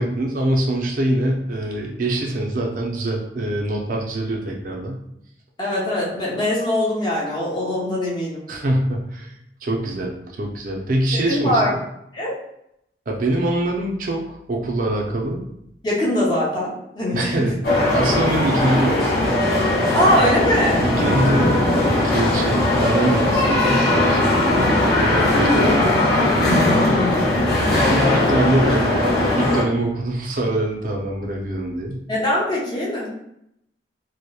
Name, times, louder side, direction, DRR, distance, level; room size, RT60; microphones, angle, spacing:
voice 1, 0.0-5.0 8.5-9.3 9.6-11.8 13.1-15.4 17.1-17.6 17.9-19.4 20.8-24.7 25.0-25.9 27.7-32.0, right 1 dB, 50° right, 0 dB, 0.4 m, -24 dB
voice 2, 5.6-8.4 11.1-11.7 12.1-12.3 15.8-17.4 18.3-18.4 19.9-20.9 24.5-24.7 25.3-25.9 26.6-27.5 32.1-33.1, left 1 dB, 25° left, -5 dB, 0.6 m, -22 dB
sound 1, 17.6-29.6, left 1 dB, 65° left, 0.7 m, -19 dB
2.8 x 2.0 x 2.2 m, 0.77 s
head